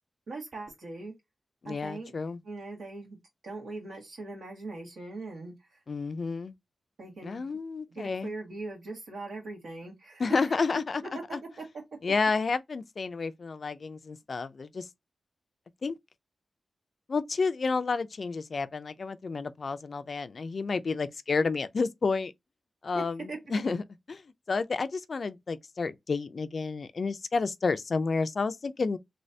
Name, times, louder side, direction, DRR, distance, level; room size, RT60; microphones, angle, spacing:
voice 1, 0.3-1.1 1.7-2.1 2.4-3.2 3.4-5.8 7.0-7.4 7.9-10.5 11.6-11.7 22.9-23.4, right 2 dB, 85° right, 1.8 m, -40 dB
voice 2, 1.6-2.4 5.9-6.5 7.2-8.3 10.2-11.0 11.3-11.4 12.0-14.9 15.8-15.9 17.1-22.3 22.8-23.2 23.5-23.8 24.1-24.2 24.5-29.0, left 4 dB, 50° left, 0.3 m, -30 dB
3.2 x 3.0 x 2.6 m
wide cardioid pair, 140°, 0 cm